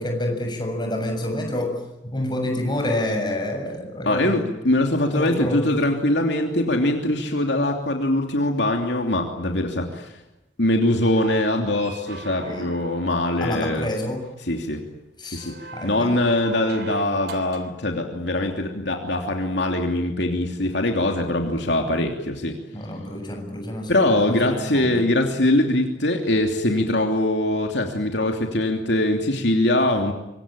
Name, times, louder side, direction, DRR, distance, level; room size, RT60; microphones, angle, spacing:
voice 1, 0.0-4.5 5.1-5.8 12.4-12.7 13.4-14.3 15.2-16.1 22.7-25.1, left 1 dB, 25° left, 3 dB, 7.1 m, -28 dB
voice 2, 4.1-4.4 4.6-10.2 10.6-13.9 14.5-14.8 15.2-22.6 23.9-30.1, left 1 dB, 60° left, 3 dB, 3.0 m, -22 dB
sound 1, 11.0-13.5 15.3-17.8 19.5-19.6, right 4 dB, 60° right, 3.3 m, -40 dB
26.0 x 24.5 x 9.0 m, 0.94 s
head